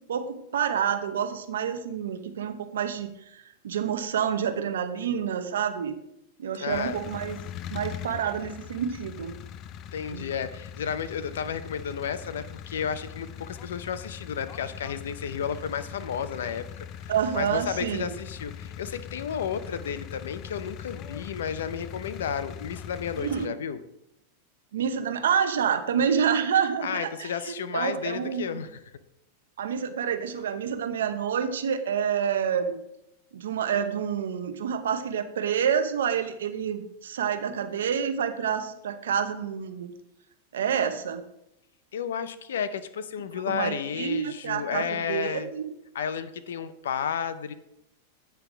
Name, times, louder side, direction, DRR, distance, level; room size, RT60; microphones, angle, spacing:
voice 1, 0.1-6.0 6.4-7.4 7.7-9.3 10.1-10.2 17.1-18.1 23.2-23.5 24.7-28.6 29.6-32.8 33.3-39.9 40.5-41.2 43.5-45.7, right 8 dB, 90° right, 10 dB, 0.8 m, -28 dB
voice 2, 6.6-7.0 9.9-16.7 17.0-23.8 26.8-28.8 41.9-45.5 45.9-47.5, left 7 dB, 85° left, 13 dB, 0.6 m, -32 dB
sound 1, 6.7-23.5, left 9 dB, 40° left, 0.3 m, -41 dB
8.8 x 3.5 x 6.0 m, 0.84 s
supercardioid pair, 135°, 0 cm